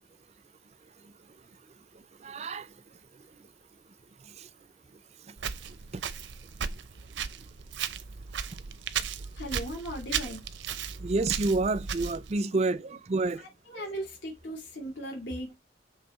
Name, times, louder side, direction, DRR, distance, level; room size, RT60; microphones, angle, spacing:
voice 1, 2.2-2.7 4.4-4.5 5.9-6.0 11.0-13.4, right 3 dB, 35° right, 0.4 m, -28 dB
Walk footsteps, 5.4-12.4, right 7 dB, 80° right, 0.7 m, -36 dB
voice 2, 9.3-10.4 12.8-12.9 13.4-15.6, equal, 80° left, 2.6 m, -38 dB
6.6 x 3.5 x 4.1 m
head